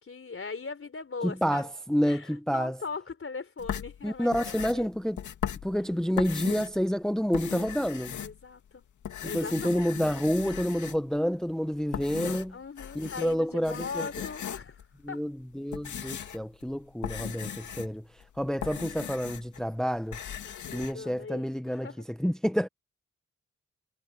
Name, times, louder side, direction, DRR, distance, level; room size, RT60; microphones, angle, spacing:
voice 1, 0.0-1.7 2.0-4.9 5.7-5.8 8.2-8.8 9.2-10.0 12.5-15.2 20.4-22.1, left 4 dB, 45° left, 4.0 m, -40 dB
voice 2, 1.2-2.8 4.0-5.2 5.6-8.2 9.2-12.5 13.0-14.1 15.0-18.0 18.4-20.2 20.7-22.7, equal, ahead, 0.8 m, -29 dB
sound 1, 3.6-6.8 7.2-8.7 9.0-11.2 11.7-13.4 13.6-14.9 15.4-19.6 19.9-20.9, left 9 dB, 85° left, 2.4 m, -38 dB
cardioid pair, 55°, 29 cm